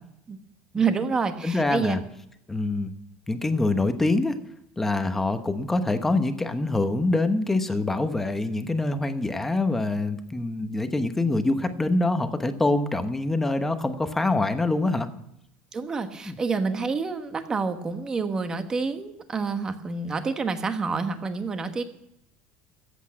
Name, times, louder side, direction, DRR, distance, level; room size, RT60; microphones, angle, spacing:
voice 1, 0.7-2.0 15.7-21.8, right 4 dB, 20° right, 8 dB, 1.2 m, -28 dB
voice 2, 1.4-2.0 2.5-2.9 3.3-4.3 4.8-15.1 16.3-16.4, left 2 dB, 10° left, 9 dB, 1.0 m, -25 dB
14.5 x 8.3 x 7.6 m, 0.78 s
cardioid pair, 155°, 3 cm